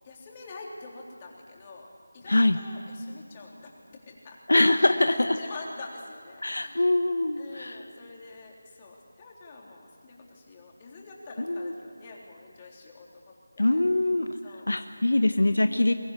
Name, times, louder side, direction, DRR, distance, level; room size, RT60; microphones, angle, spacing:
voice 1, 0.0-4.4 4.7-6.9 7.4-13.8 14.4-16.0, left 3 dB, 25° left, -1 dB, 3.6 m, -46 dB
voice 2, 4.5-5.3 6.4-7.8 11.5-11.7 13.6-14.3 14.7-15.9, left 2 dB, 75° left, 8 dB, 1.2 m, -23 dB
23.0 x 18.5 x 9.9 m, 2.1 s
figure-of-eight pair, 165°, 0 cm